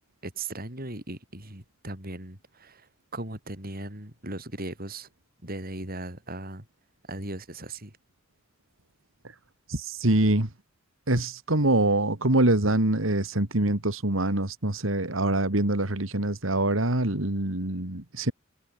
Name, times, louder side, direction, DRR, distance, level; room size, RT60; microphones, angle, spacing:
voice 1, 0.2-5.1 5.4-6.7 7.1-7.9, right 2 dB, 50° right, 6.9 m, -38 dB
voice 2, 9.7-10.5 11.1-18.3, right 1 dB, 80° right, 2.7 m, -24 dB
head